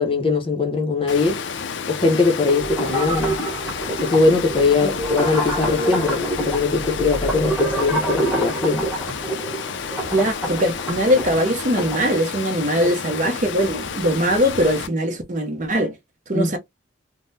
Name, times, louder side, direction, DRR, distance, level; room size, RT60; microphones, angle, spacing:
voice 1, 0.0-1.4 1.9-3.4 4.0-8.9 16.3-16.5, left 3 dB, 25° left, 0.6 m, -21 dB
Water, 1.1-14.9, left 6 dB, 65° left, 0.4 m, -31 dB
sound 1, 2.5-12.1, right 1 dB, 5° right, 0.9 m, -27 dB
voice 2, 10.1-16.0 16.3-16.6, equal, 40° right, 0.6 m, -21 dB
3.6 x 2.0 x 2.6 m
head